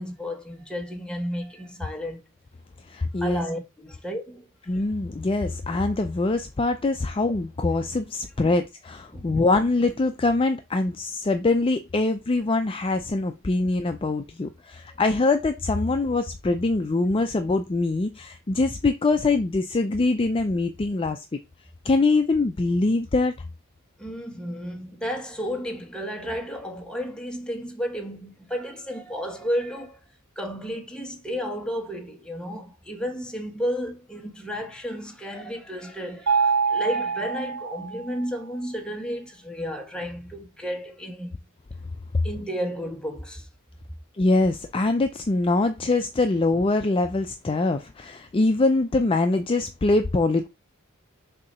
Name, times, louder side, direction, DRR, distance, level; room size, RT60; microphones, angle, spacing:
voice 1, 0.0-2.2 3.2-4.5 8.4-8.5 9.1-9.3 24.0-30.0 30.4-41.3 42.2-43.5, equal, 5° left, 1.3 m, -32 dB
voice 2, 2.9-3.4 4.7-21.4 21.8-23.3 42.1-42.2 44.1-50.5, left 2 dB, 25° left, 0.4 m, -23 dB
Mallet percussion, 36.3-38.2, right 5 dB, 85° right, 1.1 m, -25 dB
6.7 x 2.8 x 5.4 m
head